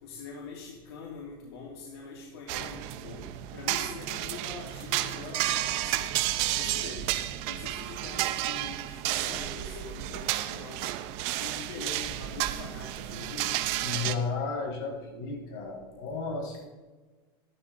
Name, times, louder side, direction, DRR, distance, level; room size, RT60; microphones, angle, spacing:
voice 1, 0.0-6.2 6.5-7.2 7.4-10.9 11.4-13.5, left 4 dB, 85° left, -2 dB, 2.5 m, -43 dB
sound 1, 2.5-14.1, right 14 dB, 55° right, 0.9 m, -32 dB
voice 2, 13.8-16.6, left 4 dB, 60° left, 0 dB, 4.8 m, -33 dB
14.5 x 11.5 x 3.9 m, 1.3 s
supercardioid pair, 135°, 13 cm